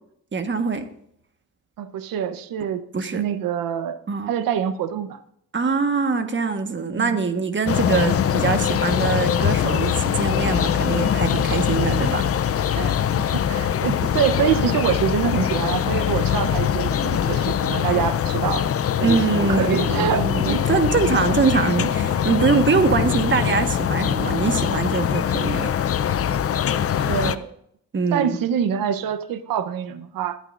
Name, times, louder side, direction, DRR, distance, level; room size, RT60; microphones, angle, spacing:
voice 1, 0.3-0.9 2.9-3.2 4.1-4.3 5.5-12.3 19.0-25.7 27.9-28.4, right 5 dB, 35° right, 7 dB, 1.5 m, -23 dB
voice 2, 1.8-2.8 3.1-4.0 4.3-5.2 7.0-7.2 12.7-18.6 19.0-20.6 22.7-23.0 27.1-27.5 28.1-30.4, right 8 dB, 85° right, 11 dB, 1.0 m, -25 dB
sound 1, 7.7-27.4, left 9 dB, 45° left, 0.6 m, -22 dB
21.5 x 8.9 x 2.6 m, 0.72 s
cardioid pair, 85°, 33 cm